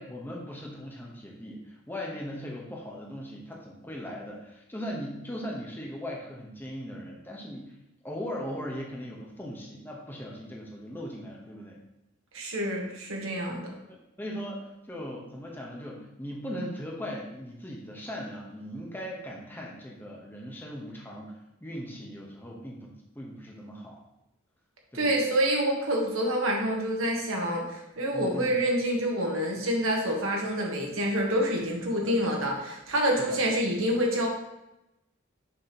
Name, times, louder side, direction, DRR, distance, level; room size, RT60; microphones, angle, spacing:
voice 1, 0.0-7.7 8.0-11.8 13.9-24.0 24.9-25.2 28.1-28.6 32.0-32.2 33.2-33.4, equal, 10° left, -2 dB, 1.0 m, -39 dB
voice 2, 12.3-13.7 24.9-34.3, equal, 80° right, 0 dB, 1.5 m, -27 dB
6.7 x 3.2 x 5.9 m, 0.90 s
head